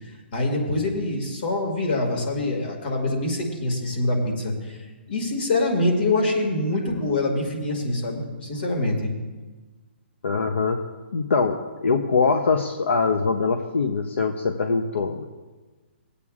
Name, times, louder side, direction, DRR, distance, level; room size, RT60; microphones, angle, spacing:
voice 1, 0.3-4.8 5.1-9.1, left 2 dB, 55° left, 1 dB, 2.1 m, -25 dB
voice 2, 10.2-10.8 11.1-15.2, left 4 dB, 90° left, 6 dB, 0.7 m, -23 dB
22.0 x 8.2 x 2.4 m, 1.3 s
hypercardioid pair, 160°, 6 cm